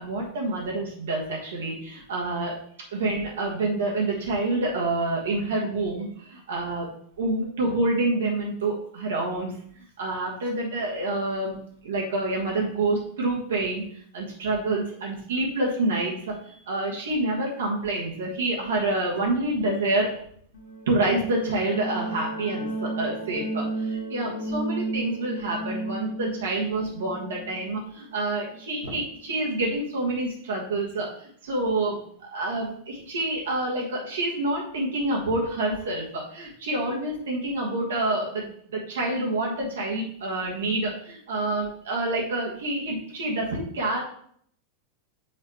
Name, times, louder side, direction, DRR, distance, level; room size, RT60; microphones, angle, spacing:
voice 1, 0.0-2.6 2.9-6.9 7.2-9.5 10.0-13.8 14.1-16.3 16.7-20.2 20.9-38.4 38.7-44.0, right 2 dB, 65° right, -2 dB, 1.6 m, -27 dB
sound 1, 20.5-29.1, right 2 dB, 55° left, 1.2 m, -33 dB
7.4 x 4.8 x 3.3 m, 0.63 s
figure-of-eight pair, 90°, 0 cm